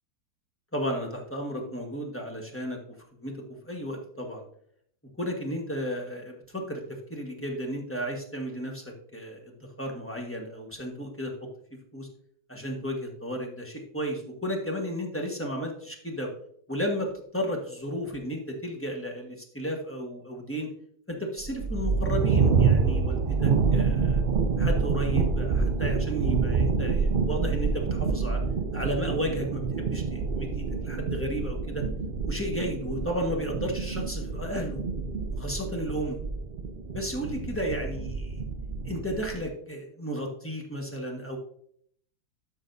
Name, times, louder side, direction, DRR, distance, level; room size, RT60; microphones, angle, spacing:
voice 1, 0.7-2.8 3.2-3.3 3.6-4.4 5.2-11.3 11.9-12.1 12.5-16.3 16.7-20.7 21.1-24.2 24.6-28.4 28.7-31.8 32.3-34.8 35.3-36.2 36.9-38.4 38.8-41.4, equal, 10° left, 1 dB, 1.2 m, -33 dB
sound 1, 21.4-39.4, right 5 dB, 85° right, 0.4 m, -27 dB
12.0 x 6.0 x 2.7 m, 0.65 s
omnidirectional pair, 1.8 m